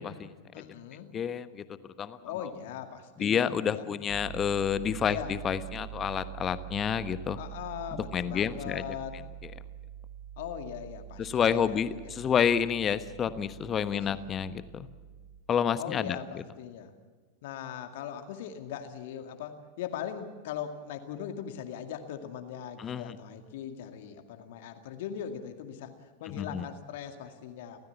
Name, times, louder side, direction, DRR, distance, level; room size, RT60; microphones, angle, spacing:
voice 1, 0.0-0.6 1.1-2.5 3.2-7.4 7.9-8.8 9.4-9.5 11.2-14.9 15.5-16.4 22.8-23.2 26.4-26.7, left 8 dB, 25° left, 13 dB, 1.2 m, -29 dB
voice 2, 0.5-1.1 2.2-3.9 5.1-5.3 7.4-9.1 10.4-12.4 13.9-14.2 15.7-16.9 17.4-27.8, left 9 dB, 55° left, 6 dB, 2.2 m, -40 dB
Piano, 4.1-15.4, right 12 dB, 35° right, 1.2 m, -45 dB
30.0 x 15.0 x 7.2 m, 1.5 s
figure-of-eight pair, 90°, 0 cm